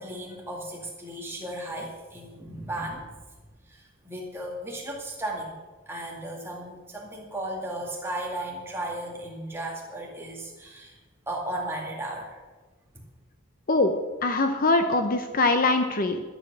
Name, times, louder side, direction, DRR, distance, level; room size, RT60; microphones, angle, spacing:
voice 1, 0.0-3.2 3.7-5.5 5.9-11.0 11.3-12.4 12.9-13.0, right 1 dB, 10° right, -2 dB, 2.3 m, -35 dB
voice 2, 14.2-16.2, left 2 dB, 40° left, 7 dB, 0.7 m, -22 dB
11.5 x 10.0 x 6.2 m, 1.2 s
head